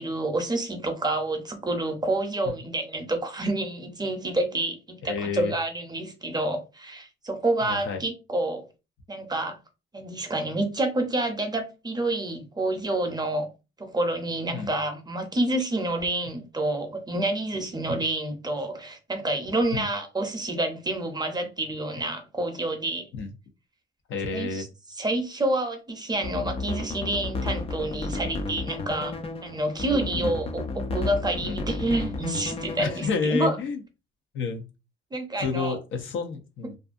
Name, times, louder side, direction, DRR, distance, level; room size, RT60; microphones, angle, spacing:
voice 1, 0.0-8.7 9.1-9.6 9.9-13.5 13.8-23.1 24.1-24.7 25.0-29.1 29.4-33.5 35.1-35.8, right 2 dB, 20° right, 0.6 m, -28 dB
voice 2, 5.0-5.5 7.6-8.0 14.5-14.7 17.9-18.0 19.7-19.9 23.2-23.3 24.1-24.7 30.2-30.4 31.4-31.6 32.8-33.8 34.3-34.6 35.4-36.8, left 4 dB, 70° left, 0.7 m, -30 dB
sound 1, 26.1-33.2, left 3 dB, 30° left, 0.4 m, -32 dB
2.5 x 2.4 x 2.4 m
cardioid pair, 100°, 21 cm